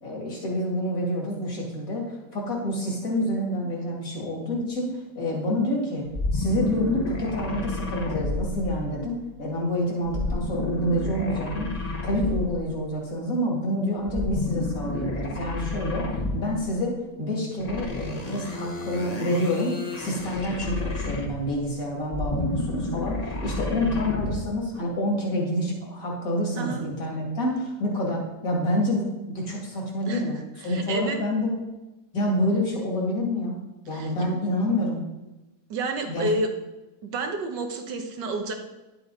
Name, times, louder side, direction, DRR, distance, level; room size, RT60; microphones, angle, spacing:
voice 1, 0.0-6.1 6.3-31.6 32.1-35.0 36.1-36.3, left 1 dB, 55° left, -2 dB, 2.9 m, -28 dB
sound 1, 6.1-9.1 10.0-12.7 14.0-16.6 17.6-21.6 22.0-24.5, left 2 dB, 25° left, 1.1 m, -31 dB
voice 2, 30.6-31.2 33.9-34.1 35.7-36.5 37.0-38.5, right 2 dB, 90° right, 5 dB, 1.9 m, -29 dB
11.0 x 7.6 x 3.9 m, 1.0 s
omnidirectional pair, 1.8 m